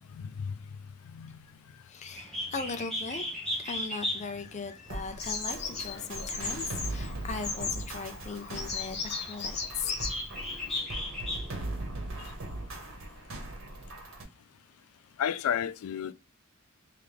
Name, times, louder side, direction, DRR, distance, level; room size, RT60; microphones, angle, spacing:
voice 1, 1.9-3.2 3.6-10.0, left 4 dB, 35° left, 0.5 m, -39 dB
Bird, 2.1-11.7, left 1 dB, ahead, 1.1 m, -38 dB
sound 1, 4.9-14.2, right 2 dB, 70° right, 1.3 m, -40 dB
Bird vocalization bird call bird song, 5.2-10.8, left 4 dB, 50° left, 1.4 m, -37 dB
voice 2, 15.2-16.1, left 9 dB, 90° left, 0.3 m, -31 dB
3.4 x 3.3 x 3.4 m
head